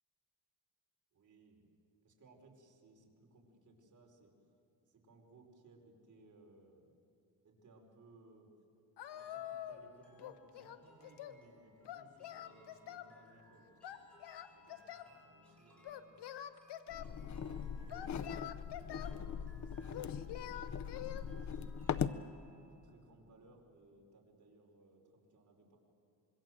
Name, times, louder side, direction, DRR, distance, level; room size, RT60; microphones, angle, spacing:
voice 1, 1.1-1.7 2.0-4.3 4.9-6.9 7.4-8.5 9.1-14.0 14.4-16.2 16.9-20.6 21.4-22.2 22.7-25.8, right 2 dB, 45° right, 0 dB, 4.8 m, -64 dB
Singing, 9.0-9.9 10.2-11.4 11.9-13.1 13.8-15.1 15.8-17.1 17.9-19.2 19.9-21.2, left 11 dB, 90° left, 1.1 m, -46 dB
sound 1, 9.1-22.8, equal, 5° left, 6.6 m, -66 dB
sound 2, 16.9-22.2, left 7 dB, 45° left, 0.7 m, -40 dB
25.5 x 23.0 x 7.7 m, 2.7 s
cardioid pair, 125°, 39 cm